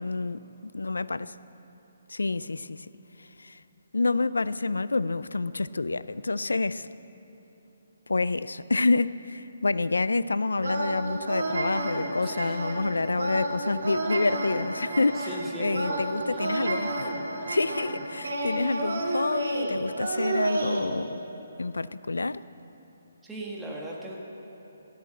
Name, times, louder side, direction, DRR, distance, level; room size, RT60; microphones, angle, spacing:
voice 1, 0.0-1.4 2.1-2.9 3.2-3.6 3.9-6.9 8.1-15.3 15.6-17.1 17.5-21.2 21.6-22.4, left 3 dB, 90° left, 0.4 m, -28 dB
sound 1, 10.6-20.8, right 2 dB, 75° right, 2.7 m, -31 dB
voice 2, 12.2-12.6 15.1-16.8 23.2-24.2, right 1 dB, 5° right, 1.5 m, -39 dB
13.5 x 10.5 x 7.8 m
hypercardioid pair, 150°, 0 cm